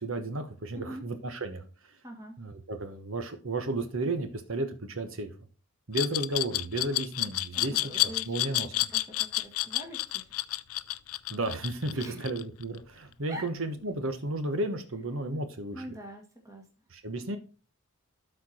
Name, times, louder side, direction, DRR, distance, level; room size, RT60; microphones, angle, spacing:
voice 1, 0.0-1.9 2.4-5.3 5.9-8.8 11.3-15.8 16.9-17.4, right 2 dB, 60° right, 8 dB, 1.1 m, -33 dB
voice 2, 2.0-2.4 7.5-10.4 11.9-12.3 13.3-13.5 15.7-16.7, equal, 15° right, -1 dB, 1.7 m, -44 dB
Glass, 5.9-12.8, left 16 dB, 75° left, 0.5 m, -29 dB
12.5 x 4.5 x 4.3 m, 0.35 s
head